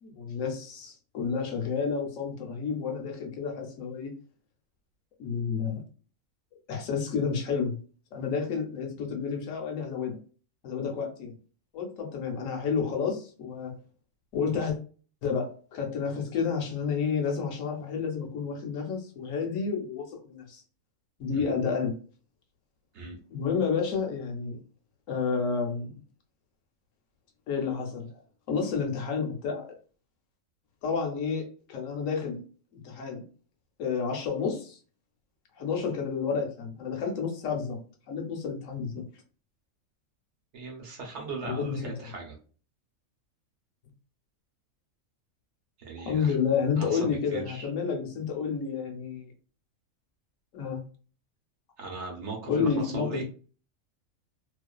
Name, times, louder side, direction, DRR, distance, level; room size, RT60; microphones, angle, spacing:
voice 1, 0.0-4.1 5.2-5.8 6.7-7.8 8.1-10.2 10.6-11.4 11.7-13.7 14.3-14.8 15.2-20.6 21.2-21.9 23.3-24.6 25.1-26.0 27.5-28.1 28.5-29.8 30.8-32.4 32.7-33.2 33.8-34.8 35.6-37.8 38.1-39.0 41.4-42.1 46.0-49.3 50.5-50.8 52.5-53.2, left 6 dB, 75° left, 1 dB, 1.0 m, -30 dB
voice 2, 40.5-42.4 45.8-46.4 46.8-47.7 51.8-53.2, right 4 dB, 60° right, 0 dB, 0.9 m, -38 dB
2.4 x 2.3 x 2.2 m, 0.40 s
omnidirectional pair, 1.4 m